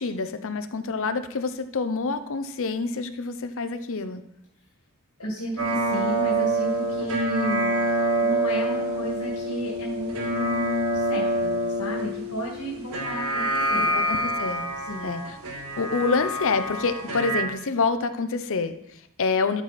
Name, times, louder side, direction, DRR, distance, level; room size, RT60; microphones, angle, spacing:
voice 1, 0.0-4.2 13.7-14.6 15.0-15.2 15.8-19.6, left 4 dB, 65° left, 10 dB, 0.7 m, -27 dB
voice 2, 5.2-13.9 14.8-15.2, right 1 dB, 80° left, -3 dB, 2.2 m, -33 dB
sound 1, 5.6-17.4, right 1 dB, 75° right, 1.7 m, -26 dB
12.5 x 4.7 x 4.2 m, 0.82 s
head